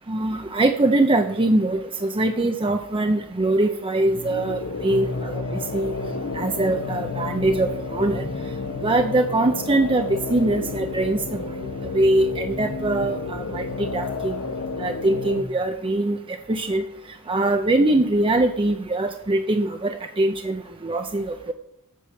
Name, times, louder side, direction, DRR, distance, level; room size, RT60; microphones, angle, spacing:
voice 1, 0.1-5.9 6.3-8.3 8.8-11.2 11.9-13.7 13.9-14.4 14.8-16.2 16.5-16.8 17.3-21.5, right 2 dB, 25° right, 5 dB, 0.6 m, -22 dB
sound 1, 4.0-15.4, left 3 dB, 80° left, 0.9 m, -31 dB
8.4 x 5.6 x 6.4 m, 0.77 s
head